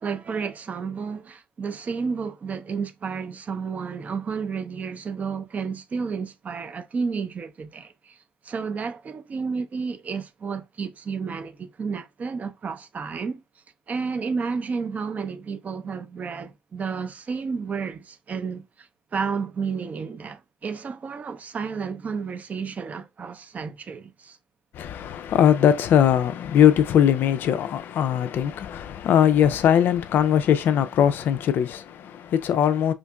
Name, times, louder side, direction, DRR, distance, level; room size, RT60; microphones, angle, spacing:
voice 1, 0.0-8.2 8.4-13.4 13.9-24.4, right 5 dB, 35° right, 0.5 m, -31 dB
voice 2, 24.7-32.9, left 9 dB, 55° left, 0.4 m, -20 dB
5.0 x 2.5 x 2.2 m
hypercardioid pair, 55°, 4 cm